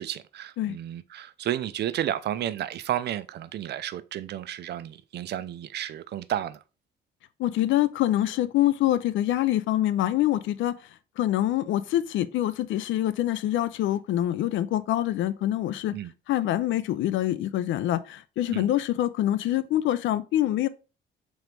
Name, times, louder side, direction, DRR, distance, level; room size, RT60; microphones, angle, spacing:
voice 1, 0.0-6.6 15.9-16.1 18.5-18.7, right 11 dB, 60° right, 0.4 m, -32 dB
voice 2, 7.4-10.8 11.2-16.0 16.3-20.7, left 13 dB, 75° left, 0.4 m, -25 dB
3.9 x 3.1 x 3.3 m
cardioid pair, 90°, 20 cm